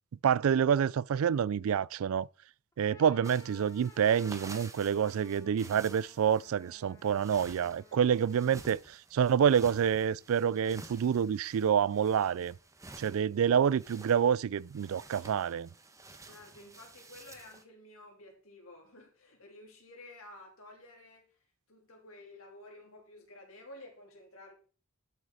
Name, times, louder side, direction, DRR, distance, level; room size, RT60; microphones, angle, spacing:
voice 1, 0.2-2.3 2.8-12.5 13.0-15.7, right 8 dB, 75° right, 0.3 m, -27 dB
sound 1, 2.7-8.7, left 2 dB, 15° left, 1.2 m, -58 dB
sound 2, 3.2-17.6, right 3 dB, 15° right, 1.1 m, -52 dB
voice 2, 16.2-21.3 21.7-24.5, left 1 dB, 75° left, 3.4 m, -52 dB
11.5 x 6.3 x 4.1 m
head